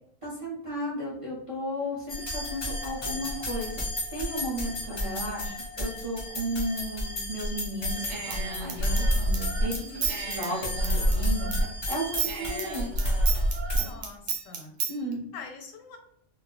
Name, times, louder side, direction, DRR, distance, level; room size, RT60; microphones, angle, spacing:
voice 1, 0.2-3.8 4.1-9.7 10.2-11.5 11.9-12.9 14.9-15.3, equal, 35° right, -6 dB, 0.5 m, -34 dB
sound 1, 2.1-13.8, left 1 dB, 30° left, 0.7 m, -35 dB
Human voice / Scissors, 7.9-11.7 11.9-14.9, right 1 dB, 75° right, 0.9 m, -27 dB
voice 2, 9.7-10.2 13.7-14.7 15.3-16.0, left 4 dB, 85° left, 4 dB, 1.0 m, -44 dB
2.3 x 2.1 x 3.7 m, 0.75 s
omnidirectional pair, 1.3 m